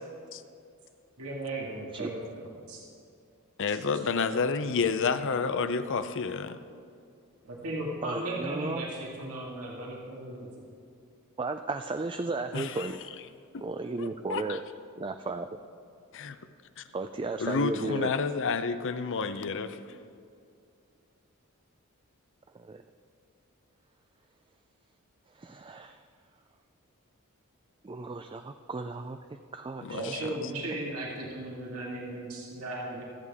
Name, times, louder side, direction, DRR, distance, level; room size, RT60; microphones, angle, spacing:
voice 1, 1.2-2.8 7.4-10.5 29.9-33.0, right 1 dB, 80° right, -3 dB, 2.1 m, -36 dB
voice 2, 3.6-6.6 12.5-12.9 13.5-13.6 14.0-14.6 16.1-16.4 16.8-16.9 17.4-19.8 29.8-30.3, left 5 dB, 60° left, 11 dB, 0.6 m, -30 dB
voice 3, 8.0-8.9 11.4-13.1 13.6-14.6 15.0-15.6 16.9-18.1 22.5-22.8 25.3-26.0 27.8-29.2 29.5-30.1, right 3 dB, 25° right, 7 dB, 0.4 m, -35 dB
25.0 x 8.5 x 3.6 m, 2.4 s
head